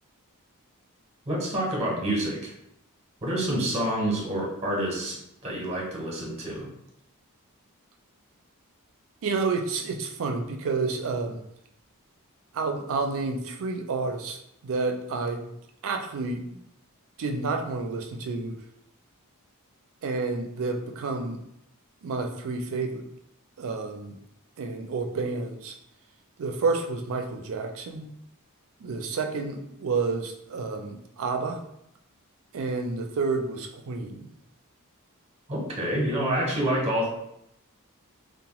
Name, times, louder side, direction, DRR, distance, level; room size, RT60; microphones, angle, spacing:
voice 1, 1.3-2.5 3.2-5.2 5.4-6.7 35.5-37.1, right 1 dB, 30° right, -2 dB, 0.8 m, -27 dB
voice 2, 9.2-11.4 12.5-15.4 15.8-16.6 17.2-18.5 20.0-21.4 22.0-23.0 23.6-24.2 24.6-25.8 26.4-28.1 28.8-31.6 32.5-34.3, right 4 dB, 65° right, 4 dB, 0.4 m, -30 dB
2.8 x 2.1 x 2.9 m, 0.77 s
head